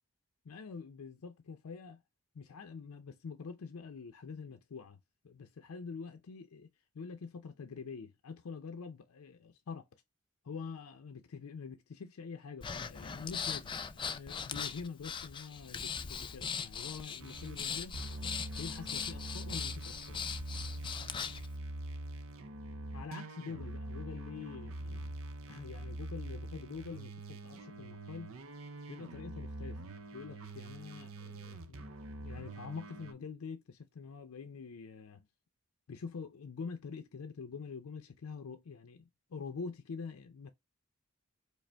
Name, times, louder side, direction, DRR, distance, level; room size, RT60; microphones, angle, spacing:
voice 1, 0.4-2.0 2.3-5.0 5.2-6.7 6.9-9.9 10.4-18.0 18.6-20.2 22.9-25.2 25.5-28.3 28.9-29.8 30.1-31.9 32.2-35.2 35.9-40.5, left 5 dB, 90° left, 0.5 m, -45 dB
Breathing, 12.6-21.5, left 6 dB, 25° left, 0.3 m, -40 dB
sound 1, 17.2-17.6 17.9-33.1, right 1 dB, 70° right, 0.6 m, -44 dB
5.0 x 2.0 x 3.3 m
head